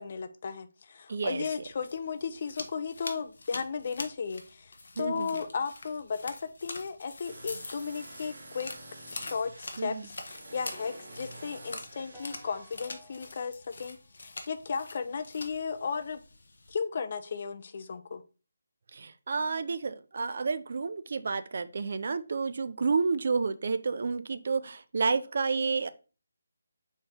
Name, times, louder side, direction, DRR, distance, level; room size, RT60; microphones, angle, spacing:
voice 1, 0.0-8.7 9.1-16.2 16.7-18.2, left 5 dB, 40° left, 11 dB, 0.4 m, -35 dB
voice 2, 1.1-1.4 5.0-5.3 9.8-10.1 18.9-25.9, right 4 dB, 45° right, 12 dB, 0.3 m, -30 dB
sound 1, 1.5-16.7, left 3 dB, 65° left, 0.8 m, -45 dB
sound 2, 7.2-12.8, right 2 dB, 70° right, 1.6 m, -49 dB
sound 3, 10.7-15.0, equal, ahead, 0.7 m, -56 dB
4.2 x 3.1 x 3.5 m, 0.33 s
hypercardioid pair, 175°, 0 cm